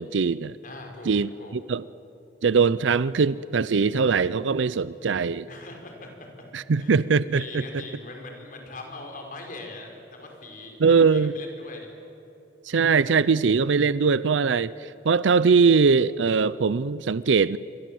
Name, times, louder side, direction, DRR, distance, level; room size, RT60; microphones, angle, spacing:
voice 1, 0.0-0.6 1.1-1.8 2.4-5.5 6.5-7.8 10.8-11.3 12.6-17.6, right 5 dB, 85° right, 18 dB, 0.5 m, -21 dB
voice 2, 0.6-1.5 5.5-6.5 6.8-6.9 7.3-10.8 11.0-11.9, left 2 dB, 45° left, 2 dB, 5.2 m, -41 dB
27.5 x 24.0 x 7.8 m, 2.9 s
head